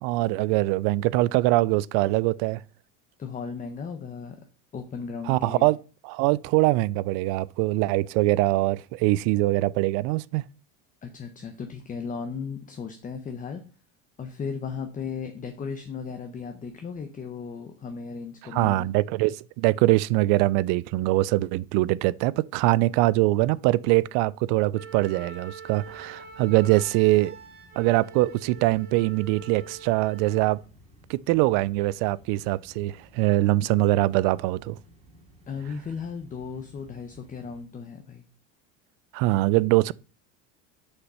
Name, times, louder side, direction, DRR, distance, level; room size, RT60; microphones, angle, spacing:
voice 1, 0.0-2.6 5.3-5.8 6.0-10.4 18.5-27.4 27.8-30.6 31.1-34.8 39.1-39.9, right 18 dB, 60° right, 0.5 m, -23 dB
voice 2, 3.2-4.4 4.7-5.7 11.0-13.6 14.2-18.9 35.5-38.2, left 5 dB, 20° left, 0.8 m, -36 dB
Wind instrument woodwind instrument, 24.7-30.6, right 5 dB, 35° right, 2.5 m, -44 dB
sound 1, 25.6-37.6, right 1 dB, 20° right, 2.3 m, -55 dB
6.7 x 5.8 x 5.5 m
supercardioid pair, 130°, 37 cm